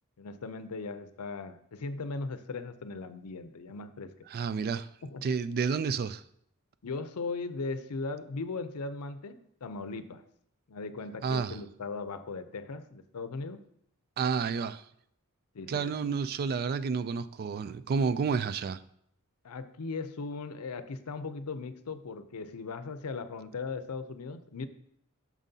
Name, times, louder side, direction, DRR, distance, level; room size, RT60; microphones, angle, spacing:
voice 1, 0.2-4.1 5.0-5.3 6.8-10.2 10.7-13.6 15.5-15.9 19.4-24.7, left 3 dB, 85° left, 0.6 m, -38 dB
voice 2, 4.3-4.9 5.2-6.2 11.2-11.6 14.2-14.8 15.7-18.8, right 5 dB, 45° right, 0.3 m, -30 dB
8.8 x 6.2 x 2.8 m
head